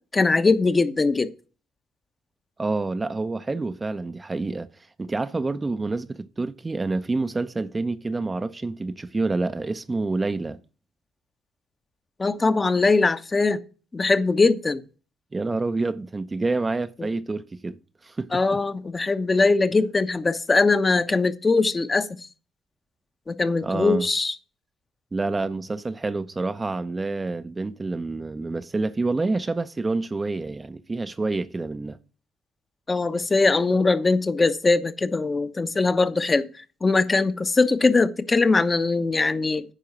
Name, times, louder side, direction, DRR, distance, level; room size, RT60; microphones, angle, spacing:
voice 1, 0.1-1.3 12.2-13.6 13.9-14.8 17.0-17.1 18.3-22.1 23.3-24.3 32.9-36.5 36.8-39.6, left 3 dB, 30° left, 1.0 m, -21 dB
voice 2, 2.6-4.7 5.0-10.6 15.3-17.8 18.0-18.6 23.6-24.1 25.1-32.0, right 3 dB, 25° right, 0.7 m, -28 dB
10.0 x 4.7 x 7.5 m
hypercardioid pair, 50°, 0 cm